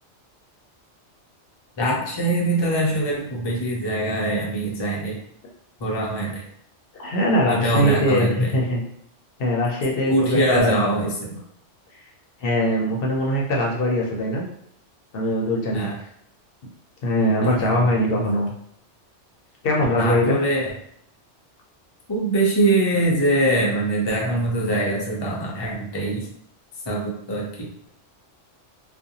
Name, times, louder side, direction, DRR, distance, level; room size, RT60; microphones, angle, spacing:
voice 1, 1.8-5.2 5.8-6.4 7.4-8.5 10.1-11.4 15.7-16.0 17.4-17.8 18.2-18.3 19.9-20.7 22.1-26.3 26.9-27.9, right 1 dB, 40° left, -3 dB, 0.3 m, -23 dB
voice 2, 7.0-8.8 9.4-10.8 12.4-14.4 15.1-15.9 17.0-18.5 19.6-20.4, equal, 60° left, -2 dB, 0.7 m, -21 dB
2.5 x 2.1 x 2.7 m, 0.70 s
omnidirectional pair, 1.2 m